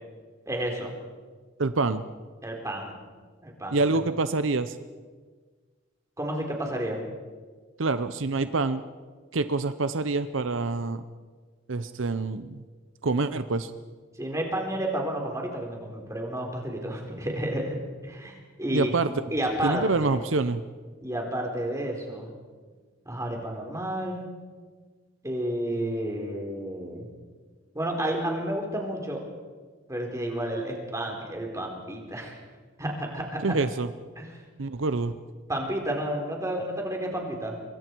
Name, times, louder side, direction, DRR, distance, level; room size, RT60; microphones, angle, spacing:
voice 1, 0.5-1.0 2.4-2.9 3.4-3.8 6.2-7.0 14.2-17.8 18.0-18.9 19.3-20.1 21.0-22.3 23.1-24.3 25.2-27.1 27.7-29.2 29.9-32.4 32.8-33.4 34.2-34.3 35.5-37.6, right 1 dB, 15° right, 1 dB, 4.0 m, -31 dB
voice 2, 1.6-2.0 3.7-4.8 7.8-8.8 9.3-11.0 11.7-12.6 13.0-13.7 18.7-19.1 19.6-20.6 33.4-33.9 34.6-35.1, right 3 dB, 80° right, 12 dB, 0.8 m, -26 dB
26.0 x 22.5 x 4.7 m, 1.5 s
head